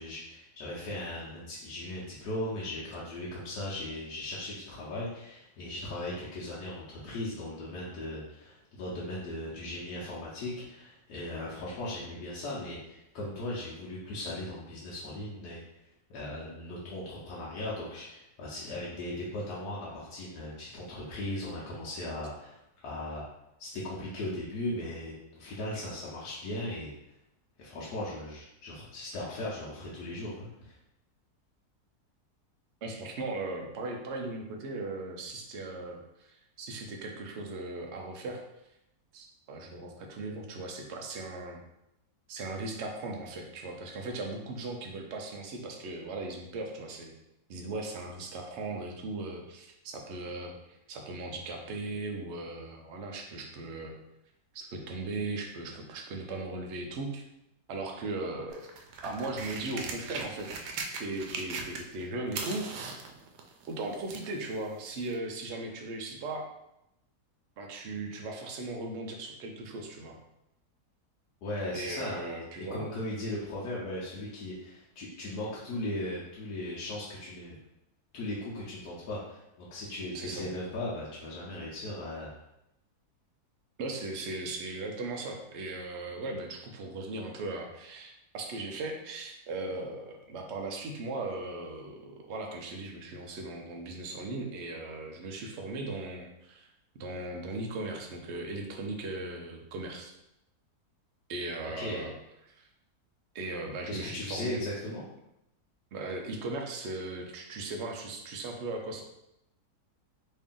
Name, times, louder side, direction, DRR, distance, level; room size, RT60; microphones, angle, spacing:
voice 1, 0.0-15.6 16.1-23.3 23.6-26.9 27.6-30.7 71.4-77.6 78.1-82.3 101.8-102.0 103.8-105.0, left 1 dB, 85° left, -7 dB, 1.3 m, -38 dB
voice 2, 32.8-38.4 39.1-41.6 42.3-47.1 47.5-50.5 50.9-53.9 54.5-57.2 57.7-58.6 59.0-60.5 61.0-62.6 63.7-66.5 67.6-70.2 71.7-72.9 80.1-80.5 83.8-96.7 96.9-100.1 101.3-102.1 102.5-102.7 103.3-104.6 105.9-109.0, right 2 dB, 60° right, 1 dB, 0.7 m, -38 dB
sound 1, 58.5-62.0 62.3-64.3 65.1-65.2, right 4 dB, 90° right, 1.1 m, -39 dB
3.2 x 2.6 x 3.6 m, 0.86 s
omnidirectional pair, 1.7 m